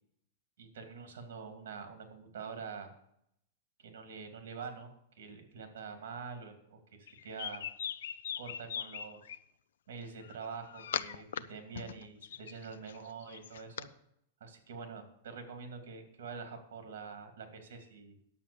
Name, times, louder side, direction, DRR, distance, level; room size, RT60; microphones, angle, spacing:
voice 1, 0.6-2.9 3.8-7.6 8.4-9.2 9.9-13.9 14.4-18.2, right 5 dB, 70° right, 7 dB, 2.6 m, -46 dB
sound 1, 7.1-9.4 10.2-11.4 11.7-13.9, left 9 dB, 85° left, 0.6 m, -40 dB
9.9 x 7.7 x 7.0 m, 0.75 s
supercardioid pair, 170°, 0 cm